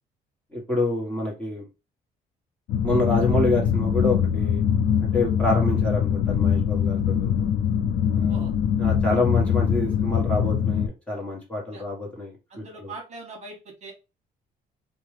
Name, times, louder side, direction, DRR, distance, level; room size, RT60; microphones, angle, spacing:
voice 1, 0.5-1.6 2.8-4.6 5.1-7.3 8.2-8.4 8.8-12.9, left 2 dB, 10° left, -4 dB, 1.2 m, -27 dB
sound 1, 2.7-10.9, left 8 dB, 70° left, 0.5 m, -23 dB
voice 2, 12.5-13.9, right 3 dB, 40° right, 0 dB, 1.2 m, -41 dB
2.8 x 2.3 x 3.2 m, 0.28 s
cardioid pair, 110°, 17 cm